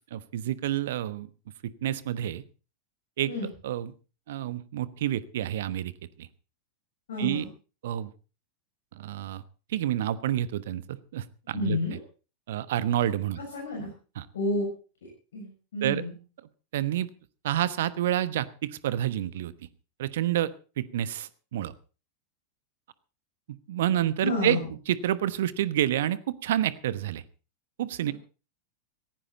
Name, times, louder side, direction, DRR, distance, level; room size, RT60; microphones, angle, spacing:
voice 1, 0.1-1.3 1.8-2.4 3.2-3.3 3.6-3.9 4.3-5.9 6.2-6.3 7.2-7.4 7.8-8.1 9.0-9.4 9.7-11.8 12.5-13.4 14.2-14.3 15.8-16.0 16.7-17.1 17.4-19.5 20.0-20.5 20.8-21.7 23.7-24.6 24.9-27.2 27.8-28.1, right 12 dB, 55° right, 17 dB, 1.1 m, -28 dB
voice 2, 7.1-7.5 11.5-12.0 13.4-13.9 14.3-14.7 15.3-16.1 24.2-24.7, left 2 dB, 60° left, -1 dB, 6.7 m, -30 dB
18.0 x 15.5 x 4.2 m, 0.35 s
figure-of-eight pair, 90°, 0 cm